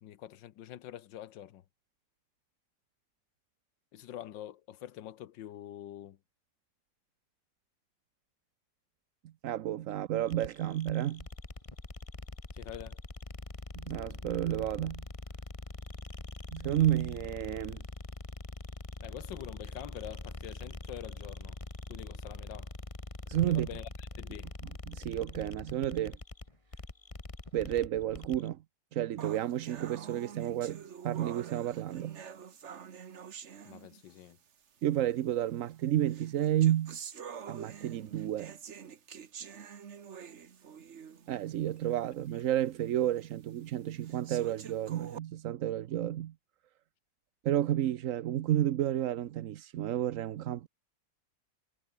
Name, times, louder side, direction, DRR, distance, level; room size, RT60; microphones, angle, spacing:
voice 1, 0.0-1.6 3.9-6.2 12.5-13.0 19.0-21.6 21.9-22.7 23.5-24.5 33.6-34.4, left 12 dB, 80° left, 1.6 m, -46 dB
voice 2, 9.4-11.3 13.8-15.0 16.5-17.8 23.3-23.7 24.9-26.2 27.5-28.6 28.9-32.2 34.8-37.0 37.5-38.6 41.3-46.3 47.4-50.7, right 12 dB, 65° right, 0.8 m, -31 dB
sound 1, 10.3-28.5, left 2 dB, 20° left, 1.8 m, -44 dB
sound 2, 29.2-34.3 35.2-35.3 36.1-41.3 41.8-41.9 42.4-42.5 43.2-43.3 44.0-45.2, right 7 dB, 45° right, 1.3 m, -47 dB
omnidirectional pair, 2.0 m